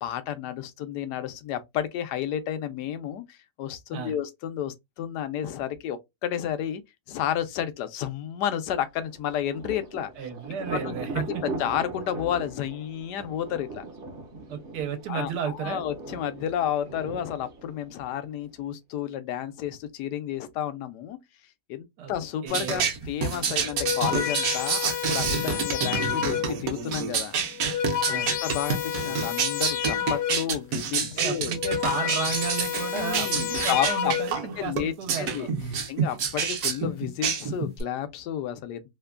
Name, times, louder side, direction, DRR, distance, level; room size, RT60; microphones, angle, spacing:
voice 1, 0.0-6.8 7.1-10.1 10.7-11.3 11.6-13.8 15.1-21.2 21.7-27.3 28.1-31.6 32.9-34.1 34.6-35.5 35.9-38.8, left 10 dB, 90° left, 1.2 m, -31 dB
Thunder, 9.0-18.5, right 3 dB, 50° right, 0.7 m, -40 dB
voice 2, 10.2-11.4 14.5-15.8 22.0-22.1 22.4-22.9 25.4-25.7 28.1-28.3 31.0-35.5, right 7 dB, 80° right, 1.3 m, -33 dB
sound 1, 22.5-37.8, right 6 dB, 65° right, 1.0 m, -28 dB
sound 2, 23.6-26.7 27.5-30.6 31.4-34.5, left 9 dB, 70° left, 0.8 m, -30 dB
3.2 x 2.1 x 2.3 m
omnidirectional pair, 1.7 m